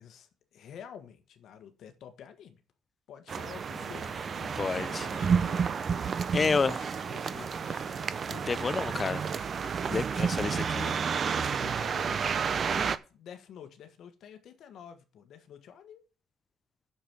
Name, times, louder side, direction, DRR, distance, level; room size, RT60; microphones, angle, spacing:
voice 1, 0.0-2.6 3.1-5.7 6.3-6.8 7.1-8.0 11.2-16.0, left 8 dB, 60° left, 1.3 m, -49 dB
sound 1, 3.3-13.0, right 6 dB, 35° right, 0.6 m, -31 dB
sound 2, 3.7-11.6, left 1 dB, 10° left, 1.9 m, -50 dB
voice 2, 4.6-5.1 6.3-6.8 7.3-7.4 8.3-9.2 9.9-11.0, left 4 dB, 25° left, 0.4 m, -30 dB
8.6 x 6.9 x 6.0 m
cardioid pair, 140°, 0 cm